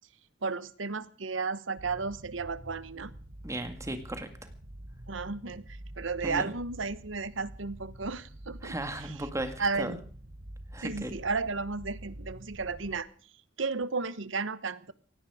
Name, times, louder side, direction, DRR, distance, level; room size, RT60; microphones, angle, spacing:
voice 1, 0.4-3.1 5.1-9.3 9.6-10.0 10.8-13.1 13.6-14.9, right 4 dB, 80° right, 16 dB, 1.1 m, -33 dB
sound 1, 1.8-13.0, right 1 dB, 45° right, 1.3 m, -47 dB
voice 2, 3.4-4.3 6.2-6.4 8.6-9.9 10.7-11.2, right 1 dB, 15° right, 8 dB, 2.0 m, -36 dB
17.5 x 16.5 x 5.0 m, 0.41 s
head